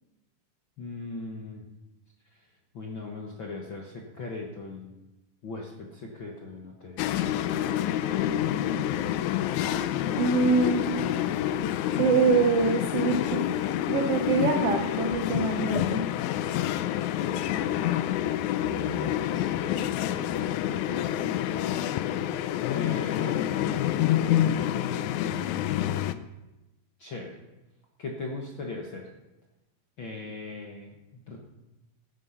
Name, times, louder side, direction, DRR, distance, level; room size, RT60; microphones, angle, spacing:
voice 1, 0.8-1.7 2.7-4.9 5.4-7.0 10.2-10.6 18.8-21.8 22.7-26.1 27.0-27.4 28.0-29.1 30.0-31.4, left 3 dB, 55° left, 0 dB, 1.3 m, -40 dB
sound 1, 7.0-26.1, left 11 dB, 85° left, 1.7 m, -28 dB
voice 2, 10.2-10.8 12.0-13.5 13.9-16.0, right 4 dB, 70° right, 3 dB, 1.4 m, -24 dB
15.0 x 9.2 x 5.7 m, 0.98 s
omnidirectional pair, 4.1 m